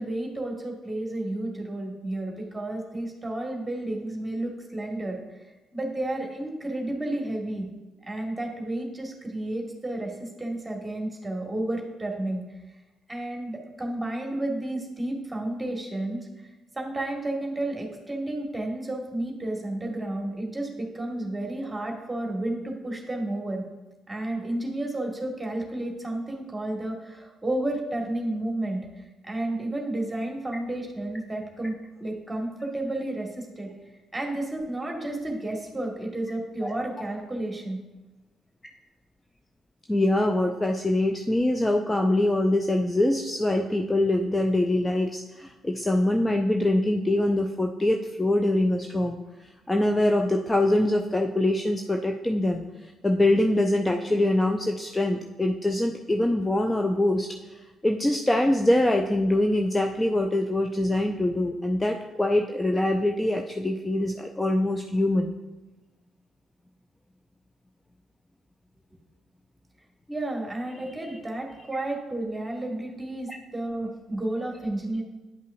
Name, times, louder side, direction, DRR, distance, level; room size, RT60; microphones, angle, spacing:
voice 1, 0.0-5.2 5.7-7.7 8.0-12.4 13.1-16.3 16.7-23.6 24.1-31.7 32.0-33.7 34.1-37.8 70.1-75.0, right 1 dB, 15° right, 1 dB, 1.7 m, -31 dB
voice 2, 39.9-49.2 49.7-57.3 57.8-65.3 71.1-71.2, left 1 dB, 15° left, 3 dB, 0.5 m, -24 dB
9.8 x 5.4 x 2.6 m, 1.1 s
figure-of-eight pair, 40°, 0 cm